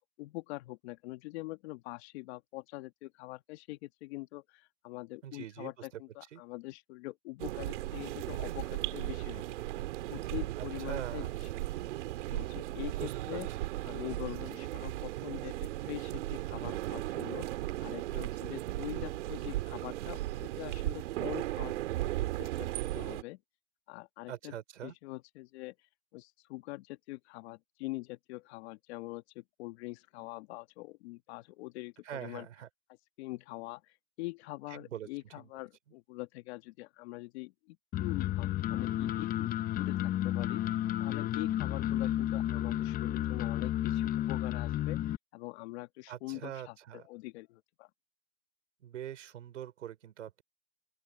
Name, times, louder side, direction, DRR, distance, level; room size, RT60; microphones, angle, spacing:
voice 1, 0.2-9.4 10.1-11.3 12.3-13.5 13.8-17.5 17.8-21.8 22.4-23.4 23.9-24.6 24.8-25.7 26.1-31.9 32.2-32.5 33.2-33.8 34.2-45.0 45.3-47.9, left 21 dB, 60° left, 1.9 m, -44 dB
voice 2, 5.2-6.0 6.3-6.4 10.6-11.4 13.0-13.7 24.3-24.9 32.0-32.7 34.7-35.5 46.1-47.1 48.8-50.4, right 10 dB, 90° right, 5.2 m, -43 dB
sound 1, 7.4-23.2, right 16 dB, 70° right, 2.6 m, -36 dB
sound 2, 37.9-45.2, left 12 dB, 25° left, 0.7 m, -32 dB
open air
hypercardioid pair, 125°, 37 cm